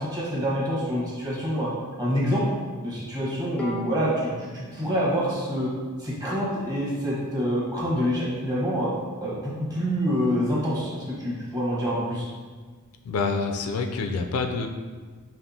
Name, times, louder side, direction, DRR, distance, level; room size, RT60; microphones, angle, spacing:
voice 1, 0.0-1.7 2.0-2.5 2.8-5.7 6.0-8.9 9.2-12.3, equal, 20° right, -7 dB, 1.0 m, -26 dB
Bowed string instrument, 3.6-6.9, equal, 5° left, 0.5 m, -42 dB
voice 2, 13.0-14.7, left 4 dB, 75° left, 5 dB, 0.3 m, -27 dB
5.3 x 2.5 x 2.6 m, 1.5 s
head